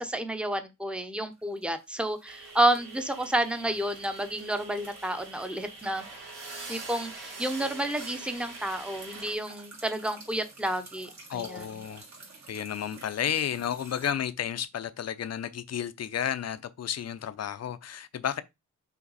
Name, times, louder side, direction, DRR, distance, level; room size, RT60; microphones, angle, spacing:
voice 1, 0.0-6.1 6.7-11.7, right 1 dB, 5° right, 0.8 m, -30 dB
sound 1, 1.3-14.1, right 3 dB, 60° right, 2.4 m, -52 dB
sound 2, 2.2-9.3, right 3 dB, 80° right, 3.0 m, -44 dB
voice 2, 11.3-12.0 12.5-18.4, left 9 dB, 55° left, 0.6 m, -32 dB
5.9 x 4.4 x 4.0 m
wide cardioid pair, 145°, 32 cm